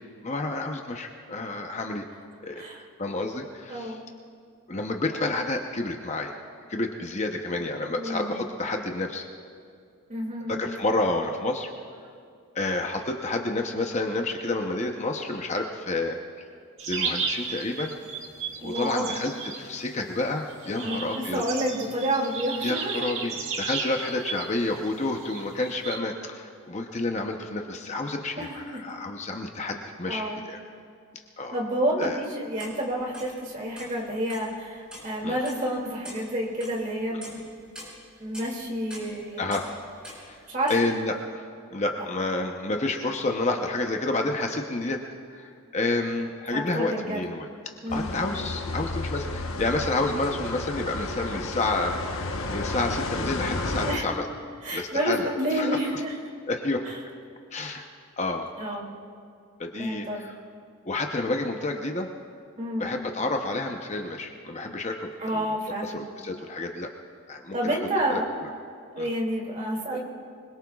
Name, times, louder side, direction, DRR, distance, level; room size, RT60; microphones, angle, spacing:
voice 1, 0.2-2.0 2.4-2.6 3.0-4.0 4.7-6.3 6.7-9.3 10.5-11.7 12.5-16.2 16.9-18.0 18.6-21.4 22.6-30.6 31.4-31.6 32.0-32.2 35.2-35.4 39.4-39.7 40.3-40.4 40.7-41.4 41.7-45.0 45.3-47.5 47.9-52.0 52.5-54.2 54.7-56.0 56.5-56.8 57.5-57.8 58.2-58.5 59.6-60.3 60.8-62.1 62.8-65.6 65.8-66.9 67.3-67.8 68.1-68.2 69.0-69.1, left 2 dB, 30° left, 3 dB, 0.8 m, -29 dB
voice 2, 3.7-4.0 7.9-8.4 10.1-10.5 18.6-19.2 20.8-23.1 28.4-28.6 30.1-30.4 31.5-37.5 38.2-39.4 40.5-40.7 46.5-47.2 47.8-48.1 53.8-54.1 54.6-56.2 56.9-57.0 58.6-58.9 59.8-60.2 62.6-62.9 65.2-66.0 67.5-68.3 68.9-70.0, right 1 dB, 35° right, -2 dB, 2.5 m, -29 dB
sound 1, 16.8-26.0, right 5 dB, 65° right, 1.7 m, -35 dB
sound 2, 32.6-33.3 33.8-34.6 34.9-35.2 35.4-35.6 36.0-36.3 36.6-36.8 37.2-40.4 40.7-40.9, equal, 5° right, 4.8 m, -43 dB
sound 3, 47.9-54.0, left 2 dB, 70° left, 1.1 m, -32 dB
25.0 x 21.5 x 2.4 m, 2.3 s
head